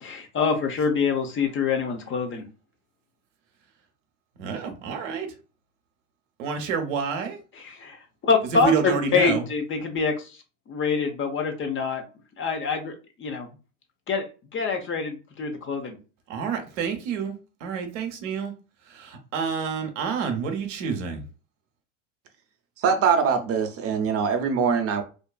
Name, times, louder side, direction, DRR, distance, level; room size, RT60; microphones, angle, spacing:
voice 1, 0.0-2.4 7.5-8.0 8.2-10.3 10.7-12.0 12.4-12.9 13.2-13.5 14.1-14.2 14.5-16.0, left 5 dB, 30° left, 0.7 m, -25 dB
voice 2, 4.4-5.3 6.4-7.4 8.5-9.4 16.3-17.3 17.6-18.5 18.9-21.2, right 6 dB, 75° right, 0.8 m, -28 dB
voice 3, 22.8-25.0, right 6 dB, 40° right, 0.6 m, -22 dB
2.6 x 2.3 x 2.2 m
hypercardioid pair, 85°, 38 cm